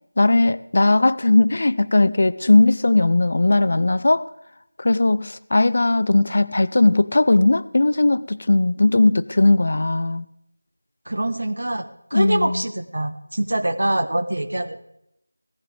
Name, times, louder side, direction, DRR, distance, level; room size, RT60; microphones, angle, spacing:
voice 1, 0.2-4.2 4.8-10.3 12.1-12.6, left 2 dB, 50° left, 16 dB, 0.5 m, -18 dB
voice 2, 11.1-14.8, right 1 dB, 75° right, 11 dB, 1.2 m, -24 dB
17.0 x 14.5 x 3.4 m, 0.79 s
figure-of-eight pair, 175°, 0 cm